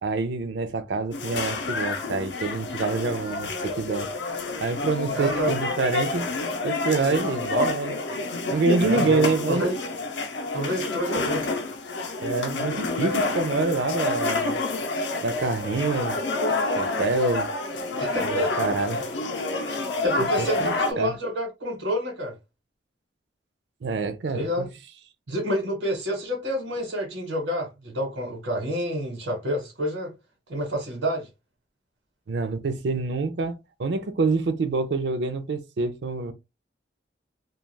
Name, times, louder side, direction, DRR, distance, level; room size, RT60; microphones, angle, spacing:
voice 1, 0.0-4.1 4.6-6.3 6.6-8.0 8.5-9.6 12.2-14.6 15.2-16.2 16.6-17.5 18.2-19.0 20.4-21.1 23.8-24.7 32.3-36.3, right 3 dB, 70° right, 0.4 m, -26 dB
sound 1, 1.1-20.9, left 3 dB, 70° left, 0.5 m, -28 dB
voice 2, 5.1-5.5 8.8-9.7 10.5-11.4 18.0-19.0 20.0-22.3 24.3-24.7 25.3-30.1 30.5-31.3, equal, 85° right, 1.0 m, -28 dB
2.3 x 2.2 x 3.1 m
head